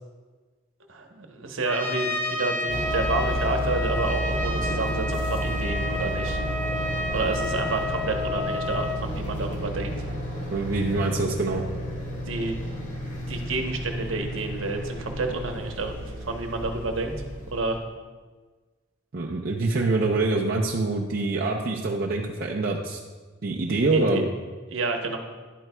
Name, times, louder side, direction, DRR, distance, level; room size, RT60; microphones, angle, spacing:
voice 1, 0.9-6.4 7.1-9.9 12.3-12.6 13.3-15.9 16.2-17.1 17.5-17.8 23.9-24.2 24.7-25.2, right 3 dB, 75° right, 4 dB, 1.0 m, -29 dB
Trumpet, 1.7-9.0, left 2 dB, 10° left, 0.5 m, -30 dB
sound 1, 2.7-17.8, equal, 40° left, 1.7 m, -32 dB
voice 2, 10.5-11.6 19.1-23.0 23.4-24.3, right 3 dB, 50° right, -2 dB, 0.5 m, -25 dB
11.0 x 9.1 x 2.3 m, 1.4 s
head